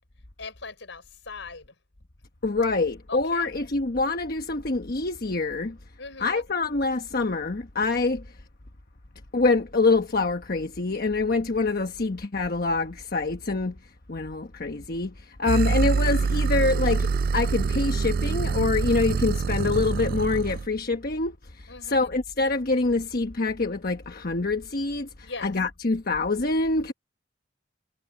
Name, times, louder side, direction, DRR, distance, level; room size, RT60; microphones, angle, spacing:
voice 1, 0.4-1.7 3.1-3.5 6.0-6.5 21.7-22.1 25.2-25.5, left 4 dB, 70° left, 5.9 m, -40 dB
voice 2, 2.4-5.8 6.2-8.3 9.3-13.7 14.1-26.9, left 3 dB, 50° left, 1.1 m, -25 dB
sound 1, 15.5-20.7, right 4 dB, 50° right, 0.4 m, -25 dB
head